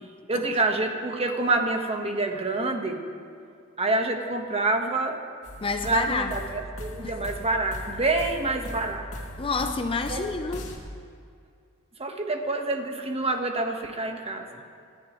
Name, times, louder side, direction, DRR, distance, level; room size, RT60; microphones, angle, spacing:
voice 1, 0.3-3.0 3.8-5.2 5.8-9.1 10.1-10.2 12.0-14.5, right 2 dB, 25° right, 4 dB, 1.2 m, -27 dB
sound 1, 5.4-10.8, equal, 65° left, 2.5 m, -39 dB
voice 2, 5.6-6.3 7.0-7.2 9.4-10.7, left 4 dB, 25° left, 7 dB, 0.5 m, -29 dB
27.0 x 13.0 x 3.1 m, 2.3 s
head